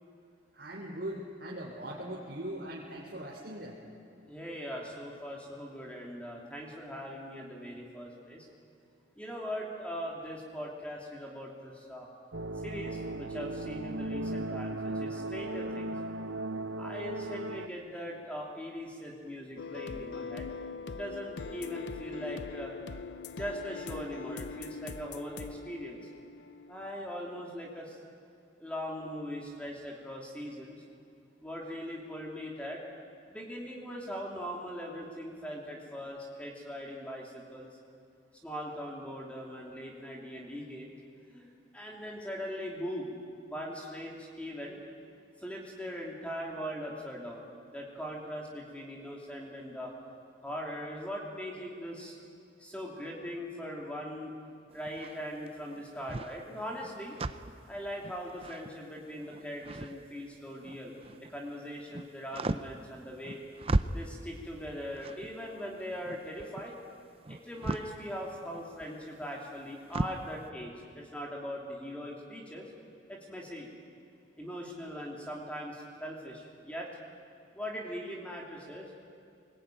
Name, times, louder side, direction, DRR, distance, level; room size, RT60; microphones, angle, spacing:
voice 1, 0.6-3.8, right 1 dB, 60° right, -3 dB, 3.3 m, -40 dB
voice 2, 4.3-8.5 9.2-12.1 12.6-15.9 16.8-20.5 20.9-22.7 23.3-26.0 26.7-28.0 28.6-30.8 31.4-32.8 33.3-37.7 38.4-40.9 41.3-43.1 43.5-44.8 45.4-49.9 50.4-52.1 52.6-54.3 54.7-57.1 57.7-60.9 61.3-63.4 63.9-66.8 67.3-72.7 73.1-73.7 74.4-76.9 77.5-78.9, equal, 5° left, -2 dB, 3.0 m, -40 dB
sound 1, 12.3-17.7, right 2 dB, 90° right, 1.0 m, -36 dB
sound 2, 19.6-26.9, left 4 dB, 65° left, 0.7 m, -42 dB
sound 3, 54.7-61.4 61.7-70.3, right 2 dB, 30° right, 0.6 m, -37 dB
24.5 x 21.0 x 9.2 m, 2.5 s
head